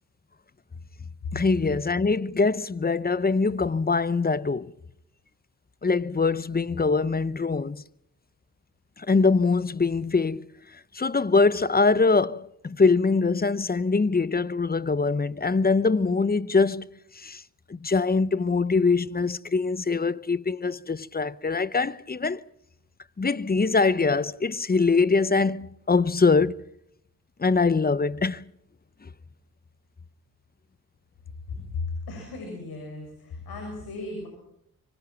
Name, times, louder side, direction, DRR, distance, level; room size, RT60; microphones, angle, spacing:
voice 1, 1.3-4.7 5.8-7.8 9.0-10.5 10.9-16.9 17.1-17.4 17.7-22.4 23.2-26.6 27.4-28.4 29.0-29.1, left 4 dB, 25° left, 0.8 m, -23 dB
voice 2, 31.7-34.3, left 3 dB, 90° left, 7.3 m, -35 dB
25.0 x 24.5 x 6.0 m
cardioid pair, 55°, 36 cm